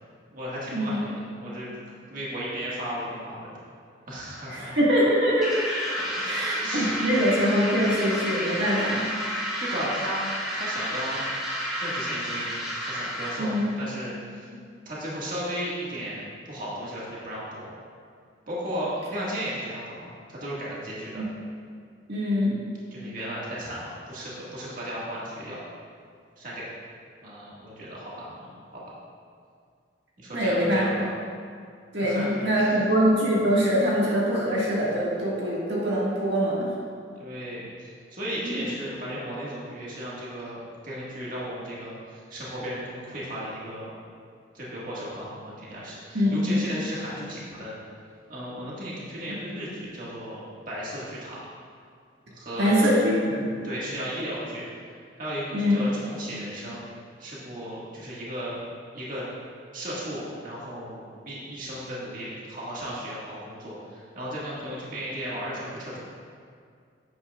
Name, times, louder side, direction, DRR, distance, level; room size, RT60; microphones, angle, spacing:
voice 1, 0.3-1.7 2.1-3.6 4.1-4.8 5.8-7.0 9.4-10.2 10.5-11.2 11.8-12.5 12.8-14.5 14.9-16.2 16.5-17.7 18.5-21.2 22.9-25.6 26.4-26.7 27.2-28.8 30.2-31.1 32.0-32.8 37.2-40.6 40.8-43.9 44.5-47.8 48.3-50.4 50.7-51.4 52.3-53.0 53.6-54.6 54.9-56.8 57.2-58.5 58.9-59.3 59.7-66.0, equal, 45° right, -7 dB, 1.8 m, -35 dB
voice 2, 4.5-5.7 6.2-9.0 13.4-13.7 21.2-21.3 22.1-22.6 30.3-30.9 31.9-36.6 38.4-38.6 46.1-46.7 49.3-49.4 52.6-53.1 53.4-53.5 55.5-55.8, equal, 60° right, -6 dB, 1.8 m, -23 dB
sound 1, 5.4-13.7, equal, ahead, 2.0 m, -31 dB
11.0 x 9.7 x 2.4 m, 2.2 s
head